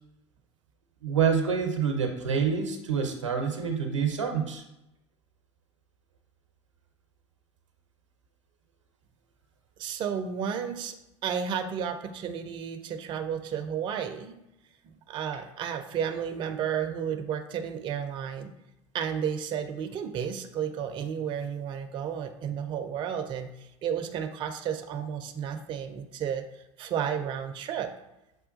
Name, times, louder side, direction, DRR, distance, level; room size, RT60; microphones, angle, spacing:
voice 1, 1.0-4.6, right 6 dB, 80° right, 4 dB, 0.6 m, -27 dB
voice 2, 9.8-11.0 11.2-14.4 15.1-18.5 18.9-23.5 23.8-26.4 26.8-27.9, right 8 dB, 30° right, 6 dB, 0.4 m, -32 dB
6.2 x 2.2 x 2.5 m, 0.89 s
figure-of-eight pair, 75°, 16 cm